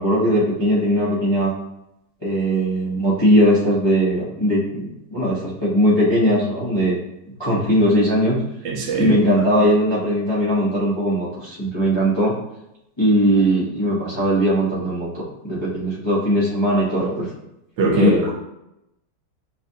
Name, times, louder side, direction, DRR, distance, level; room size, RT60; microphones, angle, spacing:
voice 1, 0.0-1.5 2.2-7.0 7.4-8.4 9.0-12.3 13.0-17.3 17.9-18.3, equal, 25° left, -8 dB, 0.6 m, -19 dB
voice 2, 8.6-9.2 17.8-18.3, equal, 80° right, 2 dB, 1.3 m, -19 dB
5.9 x 2.4 x 2.8 m, 0.86 s
omnidirectional pair, 1.9 m